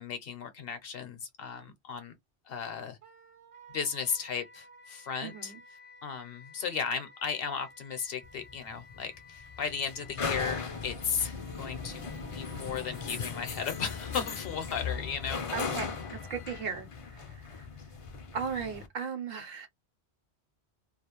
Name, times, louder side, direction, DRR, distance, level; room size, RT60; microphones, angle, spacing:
voice 1, 0.0-2.1 2.5-3.0 3.7-5.5 6.0-12.1 12.3-15.8, left 6 dB, 65° left, 0.8 m, -35 dB
Wind instrument woodwind instrument, 3.0-16.8, left 1 dB, 45° right, 0.4 m, -54 dB
voice 2, 5.2-5.6 15.5-16.0 16.3-16.9 17.1-17.7 18.3-19.7, right 6 dB, 65° right, 0.8 m, -36 dB
sound 1, 8.2-18.9, left 5 dB, 50° left, 0.4 m, -38 dB
2.4 x 2.0 x 2.9 m
omnidirectional pair, 1.1 m